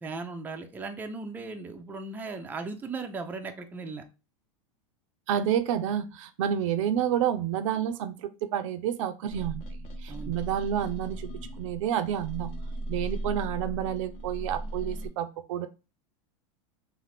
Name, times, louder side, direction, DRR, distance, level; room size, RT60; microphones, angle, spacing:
voice 1, 0.0-4.0 10.1-10.3, right 3 dB, 10° right, 5 dB, 0.4 m, -37 dB
voice 2, 5.3-11.3 11.6-12.5 12.9-15.7, right 9 dB, 75° right, 10 dB, 0.4 m, -29 dB
sound 1, 9.3-15.1, right 1 dB, 45° left, 0.8 m, -37 dB
2.5 x 2.5 x 3.3 m, 0.30 s
supercardioid pair, 115°, 17 cm